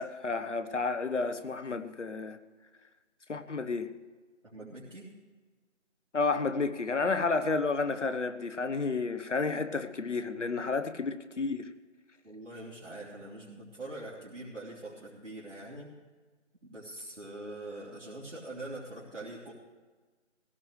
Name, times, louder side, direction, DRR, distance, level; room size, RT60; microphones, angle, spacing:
voice 1, 0.0-2.4 3.3-3.9 6.1-11.7, left 4 dB, 75° left, 1.1 m, -31 dB
voice 2, 4.4-5.1 12.2-15.9 16.6-19.5, right 1 dB, 85° right, 3.3 m, -43 dB
16.5 x 15.5 x 3.3 m
figure-of-eight pair, 170°, 36 cm